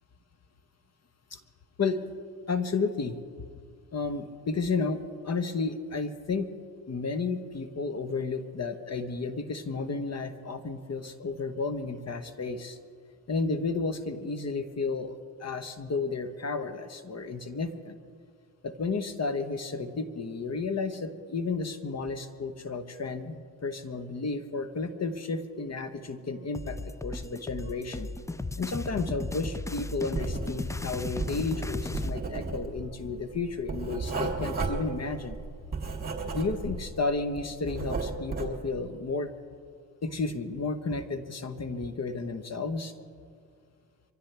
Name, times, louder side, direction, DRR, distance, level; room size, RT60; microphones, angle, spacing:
voice 1, 2.5-3.2 3.9-6.5 6.9-12.8 13.3-18.0 18.6-23.4 23.6-28.1 28.6-35.4 36.3-39.3 40.0-42.9, left 4 dB, 35° left, 10 dB, 1.3 m, -32 dB
sound 1, 26.5-32.2, left 2 dB, 5° left, 0.4 m, -35 dB
Writing, 30.1-30.8 31.1-36.9 37.2-38.6, right 4 dB, 20° right, 3.2 m, -34 dB
24.5 x 16.0 x 3.5 m, 2.1 s
supercardioid pair, 65°, 44 cm